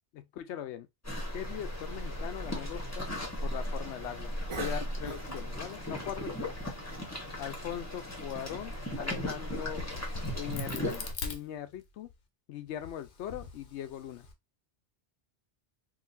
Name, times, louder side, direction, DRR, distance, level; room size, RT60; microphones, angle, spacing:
voice 1, 0.1-0.9 1.3-3.1 3.4-6.6 7.4-9.8 10.3-12.1 12.5-14.3, left 10 dB, 85° left, 0.9 m, -40 dB
sound 1, 1.0-11.1, equal, 15° left, 0.9 m, -37 dB
Cough, 2.4-7.9, right 4 dB, 55° right, 0.3 m, -47 dB
Crack, 9.5-12.1 12.7-14.3, left 5 dB, 55° left, 0.8 m, -43 dB
3.8 x 2.6 x 2.5 m
omnidirectional pair, 1.1 m